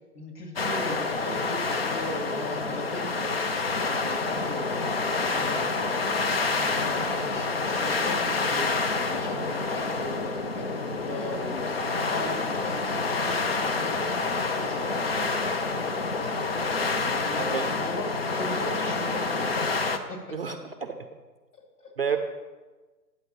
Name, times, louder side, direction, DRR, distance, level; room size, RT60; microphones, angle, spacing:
voice 1, 0.1-15.2 15.5-19.7 20.1-20.4 21.8-22.1, left 1 dB, 65° left, 2 dB, 2.5 m, -40 dB
sound 1, 0.6-20.0, left 3 dB, 40° left, 0.5 m, -28 dB
voice 2, 17.4-17.7 20.3-20.9 22.0-22.2, right 6 dB, 40° right, 7 dB, 0.5 m, -30 dB
9.0 x 7.8 x 4.1 m, 1.2 s
figure-of-eight pair, 140°, 50 cm